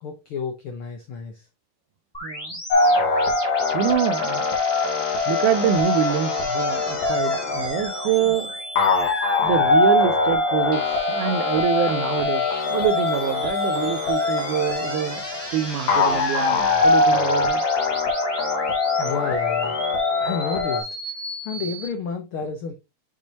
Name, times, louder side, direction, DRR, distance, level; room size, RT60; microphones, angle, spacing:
voice 1, 0.0-1.4 19.0-19.7 20.2-20.9 21.4-22.7, left 5 dB, 85° left, 1.1 m, -30 dB
sound 1, 2.1-21.9, equal, 10° left, 1.6 m, -35 dB
voice 2, 2.2-2.6 3.7-4.5 5.3-8.6 9.4-12.4 12.7-15.2 15.5-17.6 18.1-18.4, right 10 dB, 80° right, 2.1 m, -25 dB
sound 2, 2.7-20.8, left 3 dB, 65° left, 2.7 m, -22 dB
7.3 x 5.1 x 2.8 m
omnidirectional pair, 3.6 m